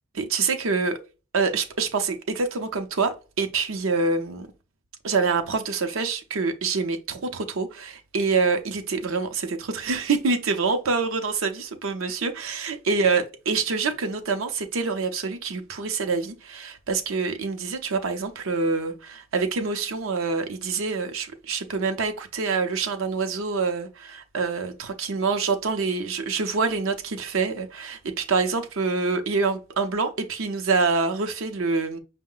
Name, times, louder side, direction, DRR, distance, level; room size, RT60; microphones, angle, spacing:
voice 1, 0.1-1.0 1.3-4.5 5.0-32.0, right 4 dB, 80° right, 0.6 m, -26 dB
5.4 x 2.1 x 3.7 m
head